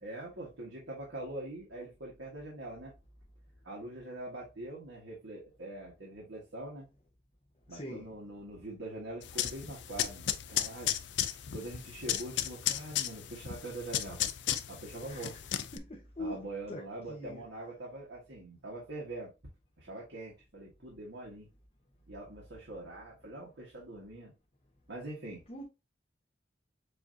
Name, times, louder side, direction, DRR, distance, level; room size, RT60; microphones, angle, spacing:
voice 1, 0.0-2.9 3.6-6.9 7.7-10.9 11.5-14.2 14.7-15.3 16.2-19.3 19.8-21.5 22.1-24.3 24.9-25.4, right 2 dB, 80° right, 1.5 m, -43 dB
voice 2, 7.7-8.0 15.1-15.2 15.7-16.4 16.7-16.8 17.1-17.4 25.5-25.6, left 1 dB, 35° left, 0.8 m, -41 dB
sound 1, 9.2-15.8, left 11 dB, 70° left, 0.4 m, -35 dB
6.8 x 2.8 x 2.7 m
head